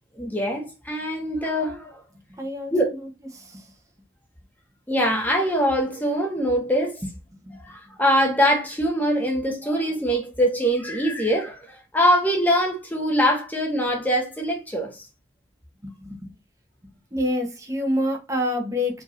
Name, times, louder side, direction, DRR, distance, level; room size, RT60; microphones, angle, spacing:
voice 1, 0.2-2.0 2.7-2.9 4.9-7.0 7.6-11.6 11.9-15.0, equal, 10° left, 1.6 m, -23 dB
voice 2, 2.3-3.1 3.3-3.6 7.5-7.6 15.8-16.3 17.1-19.0, left 1 dB, 20° right, 1.3 m, -27 dB
5.0 x 3.8 x 2.8 m
head